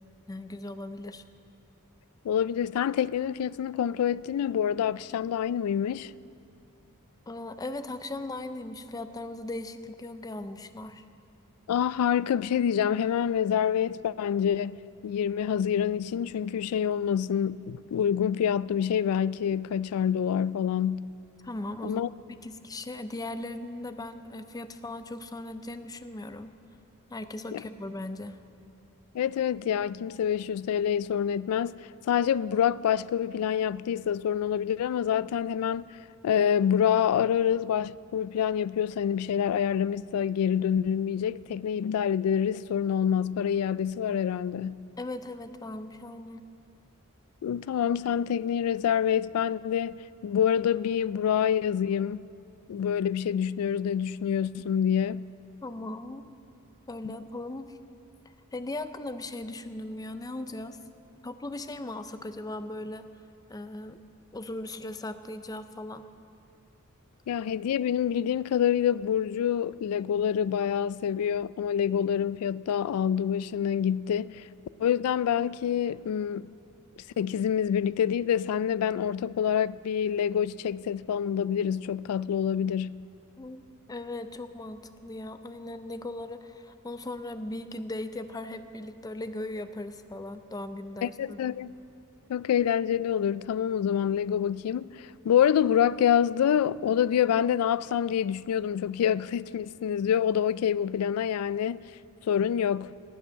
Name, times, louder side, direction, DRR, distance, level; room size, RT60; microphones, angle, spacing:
voice 1, 0.3-1.2 7.3-11.0 21.4-22.0 22.4-26.5 27.1-28.4 45.0-46.4 55.6-56.2 56.9-57.8 58.5-60.8 61.2-63.0 63.5-64.0 64.3-66.0 83.4-91.5, left 2 dB, 15° left, 0.5 m, -38 dB
voice 2, 2.2-6.1 11.7-14.8 15.0-21.1 21.8-22.1 27.5-27.6 29.1-31.7 32.1-35.9 36.2-44.9 47.4-52.3 52.7-55.2 67.3-74.4 74.8-76.5 77.2-83.0 91.0-91.7 92.3-101.8 102.3-102.9, left 8 dB, 90° left, 0.3 m, -26 dB
18.5 x 7.8 x 6.3 m
head